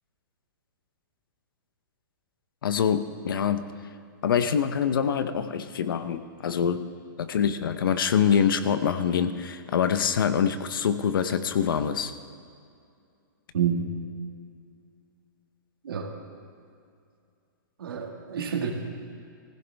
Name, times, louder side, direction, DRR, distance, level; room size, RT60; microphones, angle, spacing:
voice 1, 2.6-3.7 4.2-6.9 7.2-12.1, left 7 dB, 80° left, 10 dB, 0.9 m, -25 dB
voice 2, 13.5-13.9 15.8-16.1 17.8-18.7, right 7 dB, 90° right, 2 dB, 2.0 m, -28 dB
20.0 x 15.5 x 3.5 m, 2.4 s
hypercardioid pair, 175°, 11 cm